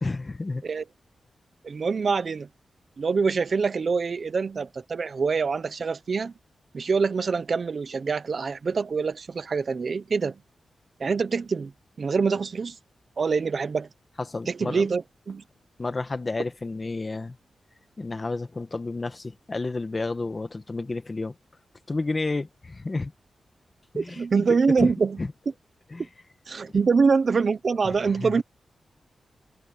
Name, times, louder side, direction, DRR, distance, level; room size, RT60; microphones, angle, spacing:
voice 1, 0.0-0.6 14.3-14.8 15.8-17.4 18.0-21.3 21.9-23.1 23.9-24.2 24.8-24.9 25.2-25.3 25.9-26.0 28.2-28.3, left 3 dB, 25° left, 1.5 m, -30 dB
voice 2, 1.6-2.5 3.0-6.3 6.7-10.4 11.0-11.7 12.0-12.8 13.2-13.9 14.5-15.4 24.0-25.2 26.0-26.1 26.5-28.4, right 5 dB, 45° right, 0.6 m, -25 dB
wide cardioid pair, 160°, 0 cm